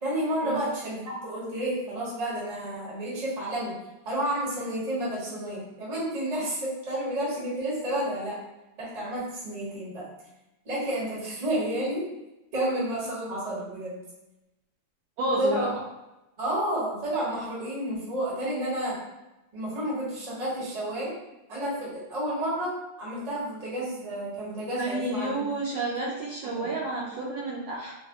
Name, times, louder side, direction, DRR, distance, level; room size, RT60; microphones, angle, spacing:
voice 1, 0.0-3.7 4.0-8.4 8.8-10.0 10.6-12.0 12.5-14.0 15.4-15.7 16.4-19.0 19.5-21.1 21.5-25.4 26.5-26.7, right 1 dB, 25° right, -7 dB, 0.9 m, -30 dB
voice 2, 15.2-15.7 24.8-27.9, right 2 dB, 75° right, -5 dB, 1.2 m, -30 dB
3.3 x 2.1 x 3.5 m, 0.99 s
omnidirectional pair, 2.2 m